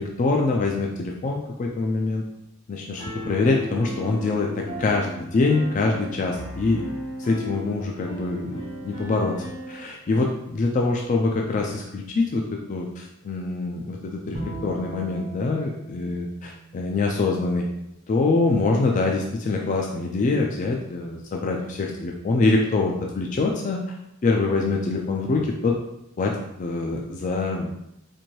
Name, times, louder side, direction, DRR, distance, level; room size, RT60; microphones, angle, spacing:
voice 1, 0.0-2.3 2.7-5.1 5.3-6.8 7.2-9.3 9.7-17.6 18.1-23.8 24.2-25.8 26.2-26.3 26.6-27.7, left 3 dB, 35° left, 0 dB, 0.3 m, -24 dB
Piano, 3.0-9.8, equal, 70° left, 1.2 m, -36 dB
Bowed string instrument, 14.3-17.6, right 2 dB, 65° right, 0.8 m, -38 dB
4.2 x 2.6 x 3.0 m, 0.83 s
head